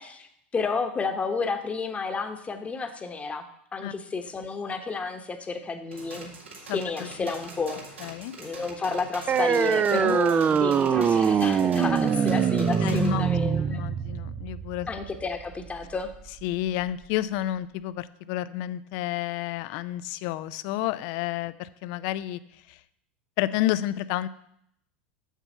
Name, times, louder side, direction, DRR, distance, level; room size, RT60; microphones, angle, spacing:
voice 1, 0.0-3.4 3.7-6.3 6.7-7.8 8.4-13.8 14.9-16.1, left 4 dB, 20° left, 7 dB, 1.1 m, -31 dB
sound 1, 5.9-13.1, right 3 dB, 90° right, 1.8 m, -44 dB
voice 2, 6.7-7.3 8.0-8.3 9.9-10.2 12.8-14.9 16.4-22.4 22.7-22.8 23.4-24.3, left 14 dB, 55° left, 16 dB, 0.5 m, -30 dB
sound 2, 9.3-16.3, right 7 dB, 25° right, 0.4 m, -24 dB
7.3 x 6.8 x 5.5 m, 0.74 s
hypercardioid pair, 90°, 6 cm